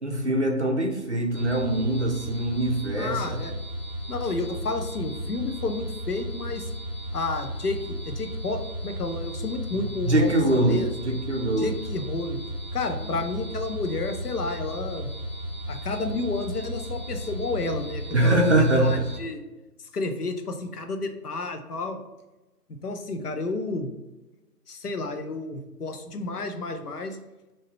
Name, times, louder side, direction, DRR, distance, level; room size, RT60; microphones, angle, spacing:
voice 1, 0.0-3.4 9.7-11.7 18.1-19.0, right 1 dB, 45° right, 2 dB, 0.5 m, -23 dB
sound 1, 1.3-19.2, equal, 5° left, 1.1 m, -35 dB
voice 2, 3.0-3.5 4.1-6.7 7.1-10.9 11.6-12.4 12.7-15.1 15.7-19.4 19.9-22.0 22.7-23.9 24.7-27.2, left 3 dB, 65° left, 6 dB, 0.7 m, -31 dB
3.6 x 2.7 x 4.3 m, 1.1 s
figure-of-eight pair, 150°, 50 cm